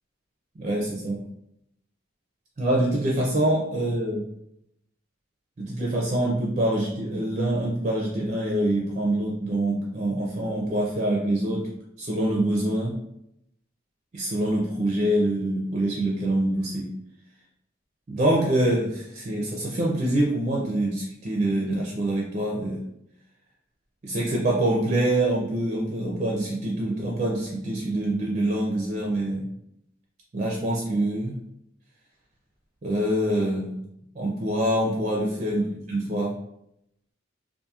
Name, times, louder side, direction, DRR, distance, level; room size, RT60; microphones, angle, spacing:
voice 1, 0.6-1.2 2.6-4.3 5.6-11.7 12.0-13.0 14.1-16.9 18.1-22.8 24.0-29.5 30.3-31.4 32.8-33.8 34.2-35.6 35.9-36.4, right 1 dB, 35° right, -3 dB, 0.4 m, -25 dB
2.7 x 2.5 x 2.4 m, 0.78 s
head